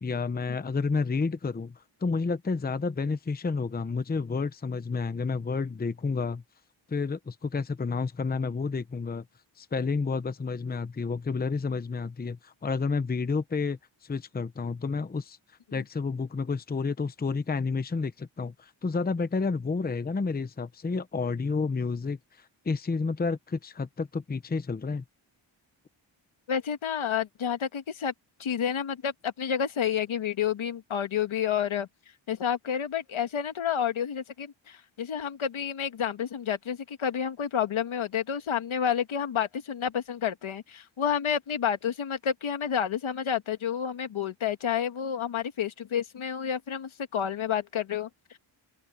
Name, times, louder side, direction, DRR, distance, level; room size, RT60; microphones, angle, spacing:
voice 1, 0.0-6.4 6.9-9.2 9.6-15.4 15.7-25.0, left 4 dB, 20° left, 0.7 m, -30 dB
voice 2, 26.5-28.1 28.4-31.9 32.3-48.4, left 8 dB, 80° left, 1.8 m, -30 dB
open air
wide cardioid pair, 155°, 47 cm